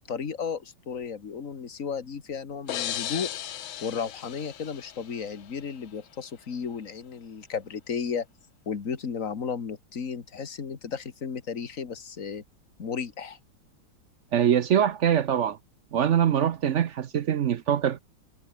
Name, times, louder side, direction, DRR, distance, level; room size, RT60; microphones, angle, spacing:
voice 1, 0.0-3.3 3.8-8.3 8.7-12.4 12.8-13.4, left 6 dB, 45° left, 2.2 m, -34 dB
sound 1, 2.7-5.5, left 11 dB, 90° left, 1.9 m, -35 dB
voice 2, 14.3-15.6 15.9-18.0, right 9 dB, 65° right, 0.7 m, -23 dB
omnidirectional pair, 2.1 m